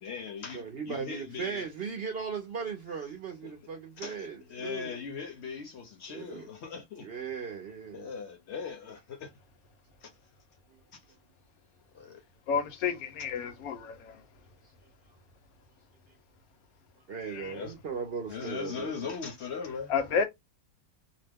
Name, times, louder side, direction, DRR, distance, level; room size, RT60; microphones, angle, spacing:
voice 1, 0.0-1.7 3.4-3.5 4.0-7.1 7.9-9.3 10.0-10.1 10.9-11.0 11.9-12.2 17.2-17.7 18.3-19.9, left 6 dB, 60° left, 0.8 m, -39 dB
voice 2, 0.5-5.0 6.1-6.5 7.0-8.1 17.1-19.1, right 6 dB, 60° right, 0.6 m, -38 dB
voice 3, 12.5-14.2 17.3-17.5 19.9-20.2, left 6 dB, 75° left, 1.1 m, -30 dB
2.8 x 2.1 x 3.4 m
omnidirectional pair, 1.6 m